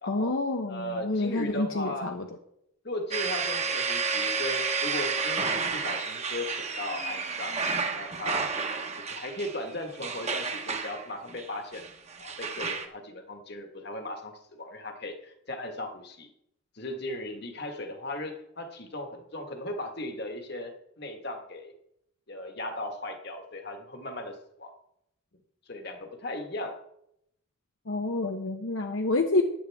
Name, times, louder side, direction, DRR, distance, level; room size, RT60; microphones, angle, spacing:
voice 1, 0.1-2.3 27.9-29.4, left 2 dB, 70° left, 4 dB, 0.9 m, -28 dB
voice 2, 0.7-2.1 2.8-7.5 7.9-11.8 12.2-16.3 16.7-21.7 22.3-24.7 25.7-26.7, left 1 dB, 50° left, 4 dB, 1.6 m, -37 dB
sound 1, 3.1-12.9, right 5 dB, 30° right, 1.1 m, -31 dB
15.5 x 10.5 x 3.6 m, 0.79 s
head